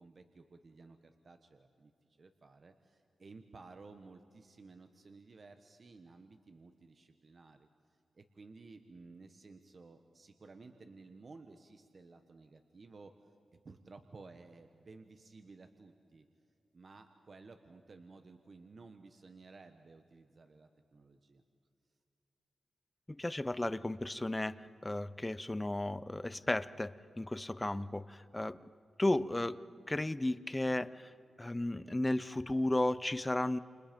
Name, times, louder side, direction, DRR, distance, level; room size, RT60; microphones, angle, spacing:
voice 1, 0.0-13.3 13.6-16.3 16.7-21.4, right 3 dB, 45° right, 7 dB, 1.3 m, -55 dB
voice 2, 23.1-28.6 29.0-29.6 29.9-31.1 31.4-33.6, left 1 dB, 15° left, 15 dB, 0.7 m, -34 dB
29.5 x 29.0 x 5.3 m, 2.6 s
wide cardioid pair, 95°, 0 cm